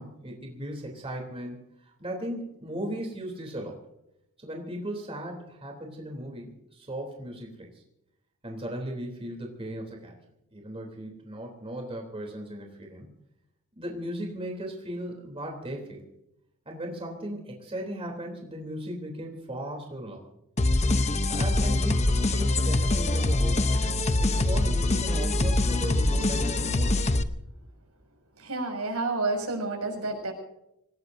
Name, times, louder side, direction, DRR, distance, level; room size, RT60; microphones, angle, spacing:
voice 1, 0.0-3.8 4.4-7.8 8.4-10.2 10.5-13.1 13.7-16.0 16.6-20.2 21.3-23.8 24.1-27.2, right 1 dB, 25° right, 1 dB, 3.4 m, -37 dB
sound 1, 20.6-27.2, left 2 dB, 30° left, 0.8 m, -24 dB
voice 2, 28.4-30.3, right 3 dB, 80° right, 3 dB, 6.4 m, -30 dB
26.5 x 19.0 x 2.7 m, 0.83 s
head